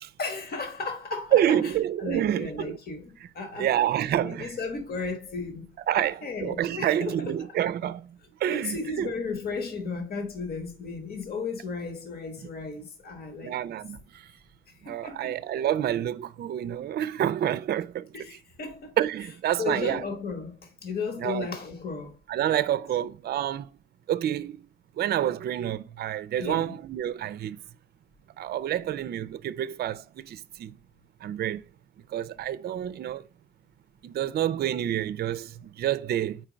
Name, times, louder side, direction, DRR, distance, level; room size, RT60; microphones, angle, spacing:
voice 1, 0.2-1.7 2.0-3.7 4.1-7.6 8.4-13.6 14.8-15.3 18.1-19.0 19.6-22.1 26.4-26.8, left 4 dB, 50° left, 1.3 m, -35 dB
voice 2, 1.3-2.8 3.6-4.5 5.9-8.1 8.4-9.1 13.4-14.0 14.8-18.1 19.0-20.0 21.2-21.5 22.3-23.7 24.1-24.6 25.0-27.6 28.4-30.7 31.2-31.6 32.1-33.2 34.0-36.4, right 11 dB, 55° right, 0.4 m, -28 dB
4.5 x 4.5 x 5.0 m
cardioid pair, 90°, 20 cm